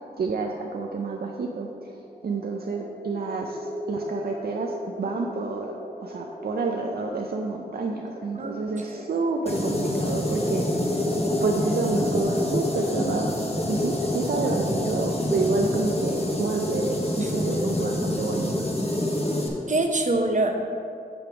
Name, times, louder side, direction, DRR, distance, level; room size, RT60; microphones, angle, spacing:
voice 1, 0.2-5.7 6.0-11.1 11.4-18.5, right 3 dB, 65° right, 1 dB, 0.5 m, -29 dB
sound 1, 1.6-18.3, left 1 dB, 20° left, 1.0 m, -36 dB
sound 2, 9.5-19.5, left 1 dB, 40° left, 1.2 m, -27 dB
voice 2, 19.7-20.6, right 2 dB, 45° right, 3 dB, 0.9 m, -25 dB
8.6 x 3.4 x 6.1 m, 2.3 s
cardioid pair, 55°, 17 cm